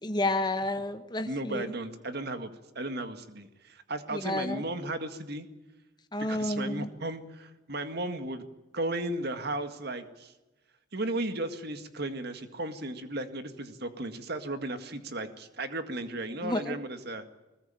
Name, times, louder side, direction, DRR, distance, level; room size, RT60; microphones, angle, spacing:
voice 1, 0.0-1.7 4.1-4.6 6.1-6.9 16.4-16.8, left 1 dB, 20° left, 8 dB, 1.2 m, -30 dB
voice 2, 1.3-5.5 6.2-8.4 8.7-10.3 10.9-17.2, right 2 dB, 50° right, 8 dB, 2.0 m, -35 dB
21.0 x 20.5 x 9.0 m, 1.1 s
head